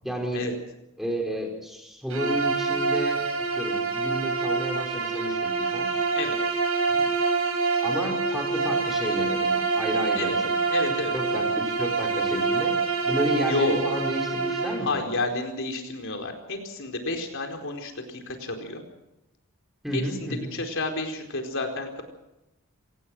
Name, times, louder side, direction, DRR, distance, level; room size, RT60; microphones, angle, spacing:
voice 1, 0.0-0.4 1.0-3.2 3.5-5.9 6.9-7.1 7.8-10.5 11.1-12.8 13.1-15.0 19.8-20.6, equal, ahead, 1 dB, 5.2 m, -32 dB
Bowed string instrument, 2.1-14.9, right 4 dB, 70° right, 6.8 m, -26 dB
voice 2, 10.7-11.1 13.5-13.8 14.8-18.8 19.9-22.0, left 2 dB, 60° left, 4 dB, 4.5 m, -30 dB
26.0 x 18.5 x 6.3 m, 0.91 s
head